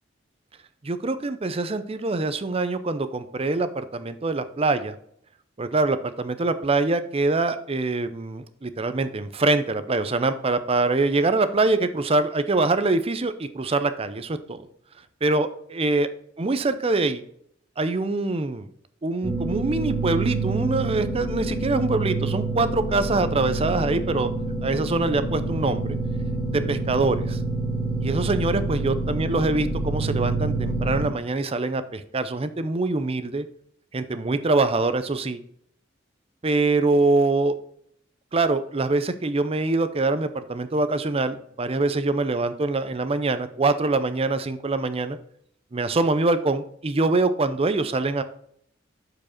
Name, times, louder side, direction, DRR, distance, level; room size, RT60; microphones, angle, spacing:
voice 1, 0.8-5.0 5.6-14.7 15.2-16.1 16.4-17.2 17.8-18.7 19.0-24.3 24.6-26.0 26.5-27.4 28.0-33.5 33.9-35.4 36.4-37.5 38.3-45.2 45.7-48.2, right 3 dB, 30° right, 11 dB, 0.6 m, -24 dB
sound 1, 19.2-31.1, right 3 dB, 10° left, 2.3 m, -27 dB
7.2 x 4.9 x 4.4 m, 0.67 s
head